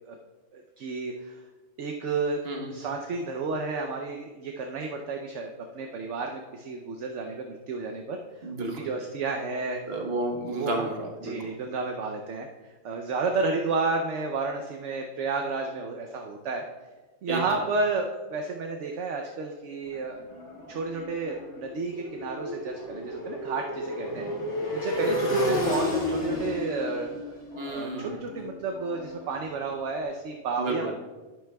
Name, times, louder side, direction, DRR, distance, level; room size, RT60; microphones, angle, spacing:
voice 1, 0.5-1.4 1.8-8.5 8.7-9.8 10.5-10.9 11.2-16.6 17.2-20.2 20.7-24.3 24.7-27.4 27.7-30.9, right 3 dB, 60° right, 3 dB, 0.9 m, -31 dB
voice 2, 2.4-2.9 8.4-8.8 9.8-11.5 17.3-17.4 27.5-28.2 30.6-30.9, right 2 dB, 45° right, 2 dB, 1.3 m, -32 dB
Motorcycle, 19.9-29.8, left 1 dB, 55° left, 2.1 m, -32 dB
11.0 x 9.3 x 2.3 m, 1.2 s
omnidirectional pair, 1.5 m